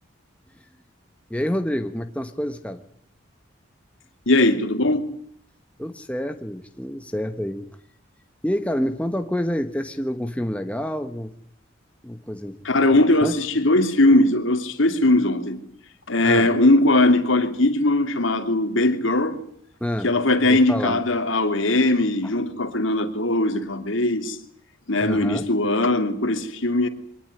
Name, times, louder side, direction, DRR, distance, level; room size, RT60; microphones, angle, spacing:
voice 1, 1.3-2.8 5.8-7.7 8.4-11.3 12.0-12.6 13.2-13.3 16.2-16.5 19.8-20.1 20.5-21.0 25.0-25.4, equal, 5° left, 1.1 m, -28 dB
voice 2, 4.3-5.1 12.6-15.6 16.1-19.3 20.0-24.4 24.9-26.9, left 2 dB, 70° left, 2.9 m, -20 dB
24.0 x 18.5 x 9.9 m
head